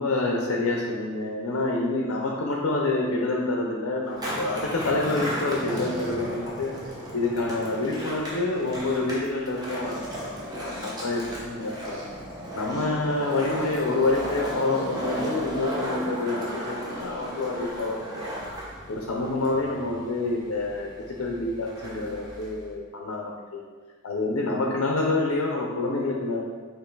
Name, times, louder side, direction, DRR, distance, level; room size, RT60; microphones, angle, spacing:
voice 1, 0.0-6.7 7.1-12.0 12.5-18.3 18.9-23.6 24.0-26.4, left 2 dB, 80° left, -1 dB, 0.6 m, -27 dB
Skateboard, 4.1-22.7, equal, 20° right, 0.8 m, -35 dB
5.3 x 2.6 x 3.9 m, 1.5 s
head